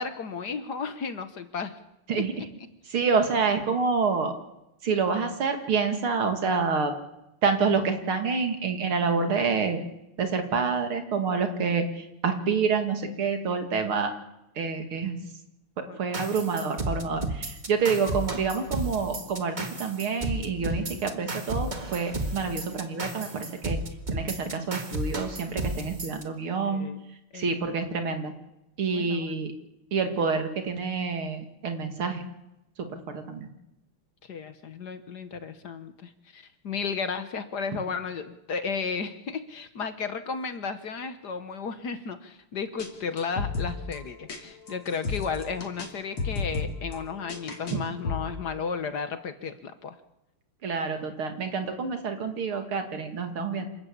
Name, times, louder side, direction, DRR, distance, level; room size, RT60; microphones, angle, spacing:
voice 1, 0.0-1.8 15.9-16.3 26.6-27.0 27.3-27.5 28.9-29.3 34.2-50.0, left 5 dB, 55° left, 10 dB, 1.6 m, -34 dB
voice 2, 2.9-4.3 4.8-6.9 7.4-9.8 10.2-14.1 14.6-15.2 16.0-23.8 24.1-26.9 27.3-28.3 28.8-29.5 29.9-32.2 32.8-33.5 47.7-47.8 50.6-53.7, right 5 dB, 75° right, 6 dB, 3.1 m, -27 dB
sound 1, 16.1-26.2, right 1 dB, 25° right, 1.6 m, -33 dB
sound 2, 42.8-42.9 43.2-44.4 44.7-45.9 46.2-47.8 48.0-48.6, left 4 dB, 75° left, 3.6 m, -33 dB
27.0 x 13.0 x 8.5 m, 0.90 s
omnidirectional pair, 2.4 m